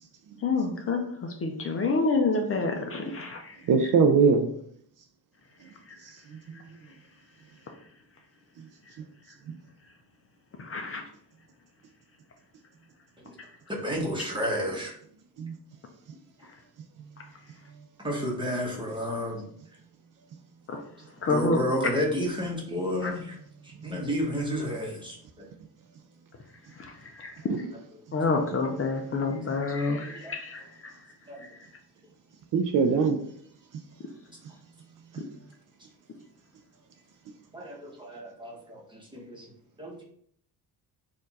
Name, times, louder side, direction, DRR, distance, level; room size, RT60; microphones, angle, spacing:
voice 1, 0.4-1.0 1.4-3.4 10.7-11.0 20.7-20.8 21.2-21.6 28.1-30.6, left 3 dB, 35° left, 3 dB, 0.5 m, -27 dB
voice 2, 3.7-4.5 15.4-15.5 27.5-27.7 32.5-33.2, right 5 dB, 55° right, 6 dB, 0.5 m, -22 dB
voice 3, 13.7-14.9 18.0-19.4 21.3-23.4 23.6-25.5 30.1-30.4 31.3-31.4 37.5-39.5 39.8-40.0, equal, 10° right, -1 dB, 1.0 m, -31 dB
4.4 x 2.5 x 4.0 m, 0.64 s
cardioid pair, 150°, 39 cm